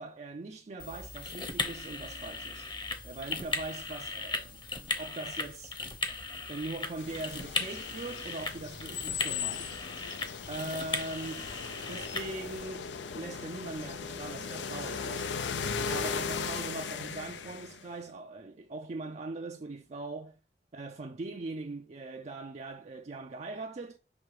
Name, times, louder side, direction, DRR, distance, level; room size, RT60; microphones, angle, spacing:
voice 1, 0.0-2.7 3.0-5.8 6.5-9.8 10.5-11.5 11.8-15.4 15.9-20.4 20.7-24.0, right 2 dB, 40° right, 0.4 m, -41 dB
sound 1, 0.8-12.6, left 3 dB, 25° left, 0.9 m, -37 dB
sound 2, 7.0-17.8, left 6 dB, 85° left, 0.6 m, -37 dB
6.1 x 3.3 x 4.8 m
head